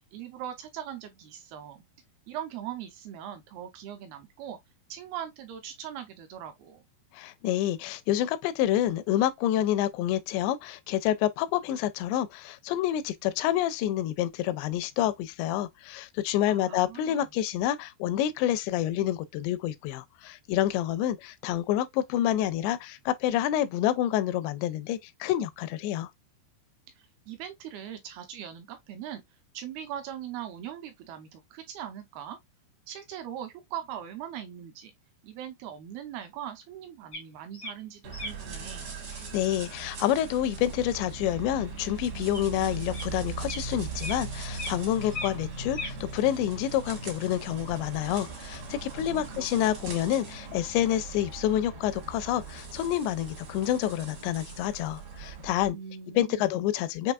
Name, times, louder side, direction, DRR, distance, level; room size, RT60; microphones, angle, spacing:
voice 1, 0.1-1.8 2.3-4.6 4.9-6.8 16.5-17.3 27.0-29.2 29.5-32.4 32.9-34.9 35.2-38.9 49.0-49.4 55.7-56.5, right 10 dB, 80° right, 2.4 m, -40 dB
voice 2, 7.1-26.1 39.3-55.8 56.2-57.1, left 12 dB, 85° left, 2.8 m, -28 dB
sound 1, 37.1-37.2 37.5-37.7 38.1-38.3 42.3-42.4 42.9-43.0 43.5-43.6 44.0-44.2 44.5-44.7 45.0-45.4 45.7-45.9, left 2 dB, 70° left, 0.6 m, -36 dB
sound 2, 38.0-55.7, right 4 dB, 60° right, 1.2 m, -40 dB
6.9 x 2.7 x 2.3 m
omnidirectional pair, 5.0 m